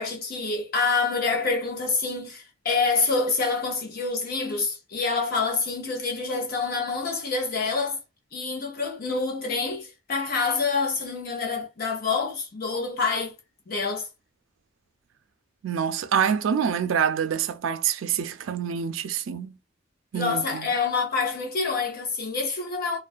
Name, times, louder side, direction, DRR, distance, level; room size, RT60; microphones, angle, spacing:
voice 1, 0.0-8.0 8.3-13.3 13.7-14.1 20.1-23.0, left 4 dB, 50° left, 0.7 m, -27 dB
voice 2, 15.6-19.6 20.1-20.7, right 7 dB, 70° right, 0.4 m, -26 dB
2.3 x 2.2 x 2.4 m
head